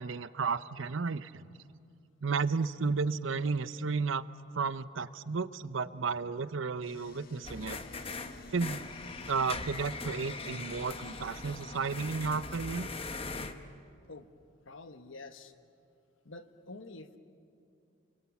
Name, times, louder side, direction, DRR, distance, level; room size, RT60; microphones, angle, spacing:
voice 1, 0.0-1.5 2.2-4.2 4.5-7.8 8.5-8.8 9.3-12.9, right 4 dB, 75° right, 15 dB, 0.7 m, -33 dB
sound 1, 6.8-12.6, left 2 dB, 50° left, 1.5 m, -52 dB
sound 2, 7.4-13.5, left 3 dB, 30° left, 1.0 m, -41 dB
voice 2, 14.6-15.5 16.2-17.2, left 2 dB, 80° left, 9 dB, 1.2 m, -47 dB
29.0 x 23.5 x 7.2 m, 2.5 s
head